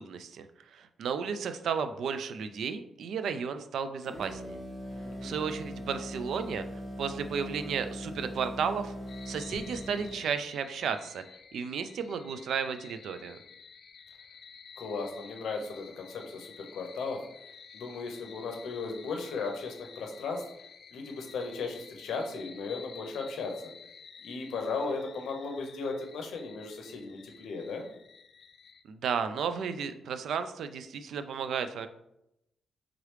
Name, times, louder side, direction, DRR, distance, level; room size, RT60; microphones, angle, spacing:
voice 1, 0.0-4.6 5.2-6.6 7.0-8.9 9.3-11.2 11.5-13.4 28.9-31.9, right 6 dB, 70° right, 10 dB, 0.3 m, -33 dB
sound 1, 4.0-10.3, equal, 15° right, 1.0 m, -41 dB
voice 2, 4.9-5.5 14.8-17.2 17.7-20.4 20.9-23.5 24.2-27.8, left 4 dB, 90° left, 3 dB, 0.6 m, -36 dB
sound 2, 9.1-28.8, left 6 dB, 55° left, 0.3 m, -52 dB
3.6 x 3.1 x 3.2 m, 0.83 s
wide cardioid pair, 160°, 0 cm